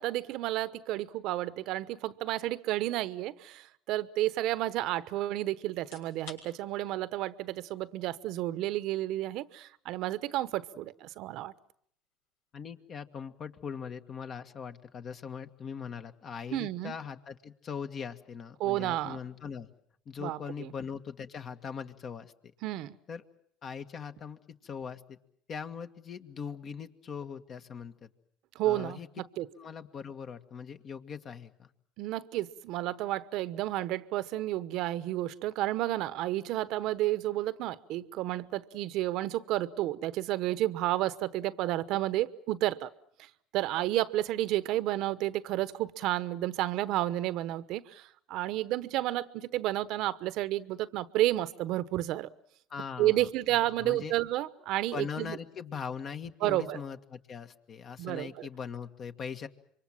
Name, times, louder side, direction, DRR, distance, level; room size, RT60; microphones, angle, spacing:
voice 1, 0.0-11.5 16.5-16.9 18.6-19.2 20.2-20.7 22.6-22.9 28.5-29.5 32.0-42.9 43.5-52.3 53.0-55.4 56.4-56.8 58.0-58.5, right 15 dB, 70° right, 16 dB, 1.0 m, -31 dB
sound 1, 5.7-20.6, left 5 dB, 85° left, 6.5 m, -61 dB
voice 2, 12.5-19.7 20.1-22.3 23.1-23.2 23.6-25.2 25.5-28.1 28.6-29.1 29.5-31.7 52.7-53.3 53.8-54.1 54.9-59.5, left 6 dB, 45° left, 8 dB, 1.8 m, -41 dB
26.5 x 24.0 x 7.4 m, 0.67 s
supercardioid pair, 85°, 0 cm